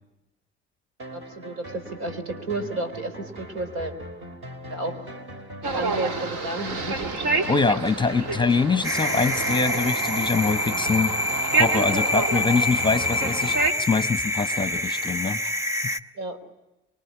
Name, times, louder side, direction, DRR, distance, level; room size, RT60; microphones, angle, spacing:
sound 1, 1.0-14.5, right 1 dB, 40° right, 3.1 m, -40 dB
voice 1, 1.1-3.9 4.7-5.1 5.7-7.2 16.2-16.4, right 2 dB, 75° right, 8 dB, 3.9 m, -32 dB
sound 2, 5.6-13.7, right 3 dB, 55° right, 2.2 m, -28 dB
voice 2, 7.5-11.1 11.5-15.5 15.8-16.0, left 4 dB, 15° left, 12 dB, 1.0 m, -24 dB
sound 3, 8.8-16.0, left 1 dB, 10° right, 1.3 m, -26 dB
25.5 x 24.0 x 8.5 m, 0.98 s
hypercardioid pair, 55°, 34 cm